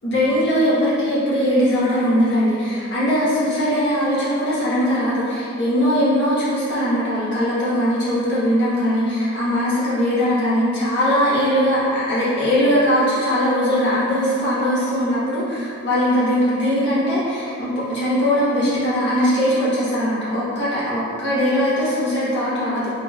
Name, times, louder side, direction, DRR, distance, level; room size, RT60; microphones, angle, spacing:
voice 1, 0.0-22.9, equal, 55° left, -11 dB, 1.3 m, -20 dB
3.7 x 3.3 x 2.4 m, 2.4 s
head